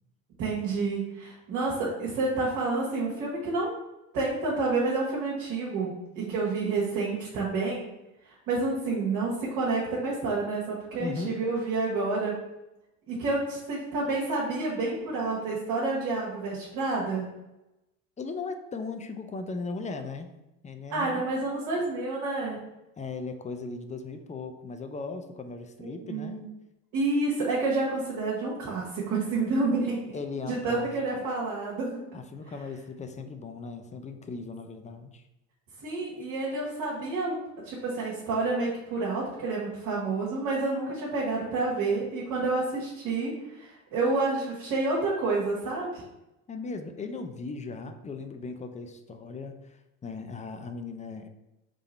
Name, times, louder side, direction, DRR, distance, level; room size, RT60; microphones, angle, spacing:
voice 1, 0.4-3.7 4.1-7.9 8.2-12.3 13.1-17.2 20.9-22.6 25.8-26.5 26.9-30.2 30.5-32.0 35.8-37.3 37.6-46.0, right 3 dB, 55° right, -6 dB, 1.6 m, -29 dB
voice 2, 11.0-11.4 18.2-20.3 20.6-21.3 23.0-26.4 30.1-31.0 32.1-35.2 46.5-51.3, left 4 dB, 20° left, 7 dB, 0.5 m, -37 dB
3.7 x 3.3 x 4.3 m, 0.93 s
hypercardioid pair, 65°, 41 cm